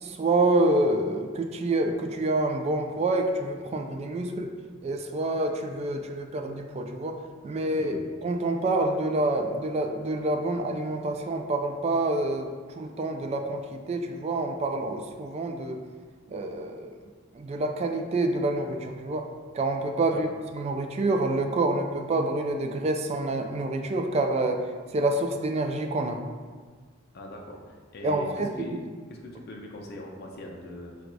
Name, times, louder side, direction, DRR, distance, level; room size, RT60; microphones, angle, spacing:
voice 1, 0.0-4.5 4.8-7.2 7.4-12.5 12.7-15.8 16.3-17.0 17.3-19.2 19.5-24.6 24.9-26.2 28.0-28.8, right 2 dB, 30° right, 4 dB, 0.3 m, -27 dB
voice 2, 27.1-28.8 29.1-31.1, left 1 dB, 55° left, 0 dB, 0.5 m, -41 dB
4.5 x 2.3 x 3.9 m, 1.5 s
head